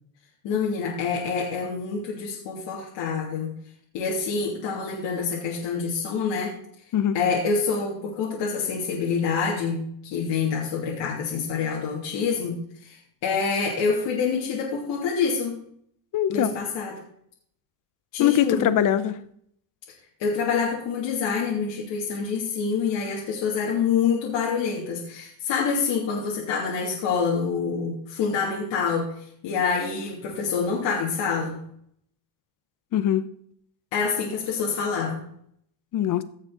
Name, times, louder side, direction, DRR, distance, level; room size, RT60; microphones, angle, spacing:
voice 1, 0.4-3.5 3.9-6.6 7.1-15.6 16.3-17.0 18.1-18.7 20.2-29.1 29.4-31.6 33.9-35.3, left 5 dB, 65° left, -4 dB, 3.0 m, -26 dB
voice 2, 16.1-16.5 18.2-19.1 32.9-33.3 35.9-36.2, left 10 dB, 40° left, 14 dB, 0.9 m, -22 dB
16.0 x 6.5 x 4.0 m, 0.67 s
cardioid pair, 120°, 47 cm